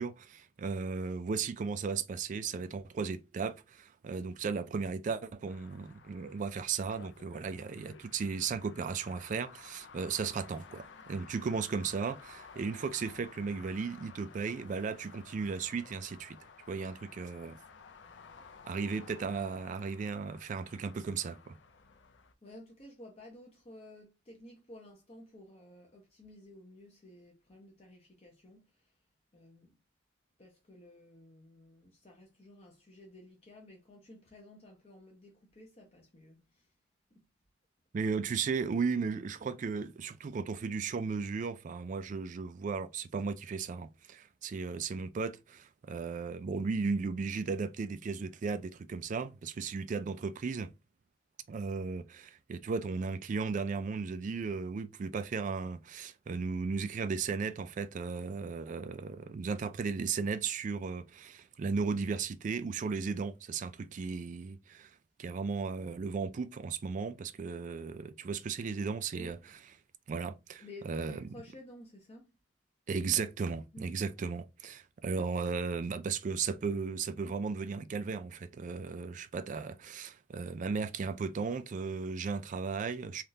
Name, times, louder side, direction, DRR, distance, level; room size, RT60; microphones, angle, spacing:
voice 1, 0.0-16.4 16.7-17.6 18.7-21.5 37.9-50.7 51.5-64.9 65.2-69.4 70.1-71.2 72.9-83.2, right 5 dB, 45° right, 0.3 m, -35 dB
sound 1, 5.5-22.3, left 5 dB, 75° left, 0.5 m, -54 dB
voice 2, 22.4-28.9 29.3-29.7 30.4-36.7 37.1-37.3 69.1-69.4 70.6-72.3 73.7-73.9 74.2-74.3, left 1 dB, 35° left, 0.8 m, -53 dB
3.5 x 2.4 x 2.7 m
head